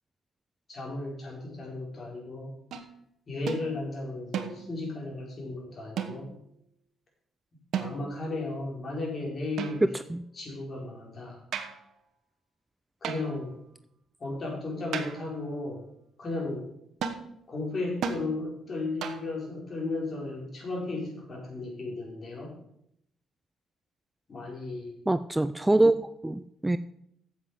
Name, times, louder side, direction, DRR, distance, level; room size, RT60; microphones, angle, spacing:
voice 1, 0.7-2.5 3.3-6.3 7.8-9.9 10.4-11.4 13.0-13.6 14.2-15.8 16.2-16.7 17.5-22.5 24.3-24.9 25.7-25.8, left 2 dB, 40° left, -1 dB, 4.3 m, -35 dB
sound 1, 2.7-2.9 3.5-3.7 4.3-4.8 6.0-6.4 7.7-8.2 9.6-10.1 11.5-11.9 13.0-13.5 14.9-15.4 17.0-17.3 18.0-18.3 19.0-19.4, right 7 dB, 70° right, 1.1 m, -35 dB
voice 2, 9.8-10.2 25.1-26.8, right 2 dB, 10° right, 13 dB, 0.4 m, -25 dB
8.4 x 7.4 x 6.4 m, 0.74 s
cardioid pair, 90°, 0 cm